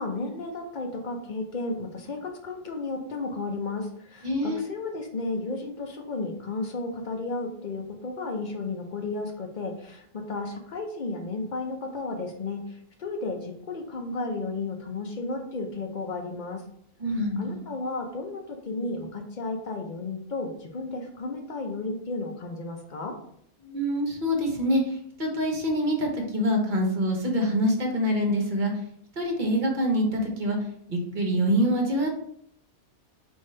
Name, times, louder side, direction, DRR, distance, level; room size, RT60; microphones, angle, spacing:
voice 1, 0.0-16.6 17.1-23.1, left 3 dB, 50° left, 3 dB, 0.7 m, -33 dB
voice 2, 4.2-4.6 17.0-17.7 23.6-24.8 25.2-28.7 29.2-30.6 30.9-32.1, equal, 45° right, 1 dB, 1.0 m, -25 dB
5.1 x 2.7 x 3.2 m, 0.70 s
omnidirectional pair, 1.2 m